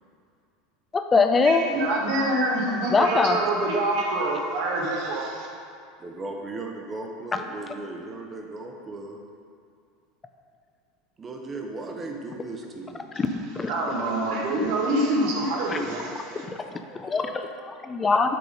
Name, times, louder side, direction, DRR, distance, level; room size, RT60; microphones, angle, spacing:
voice 1, 0.9-1.7 2.9-3.4 13.2-13.3 13.5-13.7 15.7-15.8 16.9-18.4, left 4 dB, 25° left, 6 dB, 0.6 m, -22 dB
voice 2, 1.4-5.5 13.7-16.4, right 1 dB, 60° right, -1 dB, 1.3 m, -26 dB
voice 3, 6.0-9.2 11.2-13.1 16.2-17.3 18.0-18.4, right 2 dB, 25° right, 2 dB, 1.0 m, -38 dB
6.8 x 3.9 x 5.1 m, 2.4 s
hypercardioid pair, 80°, 0 cm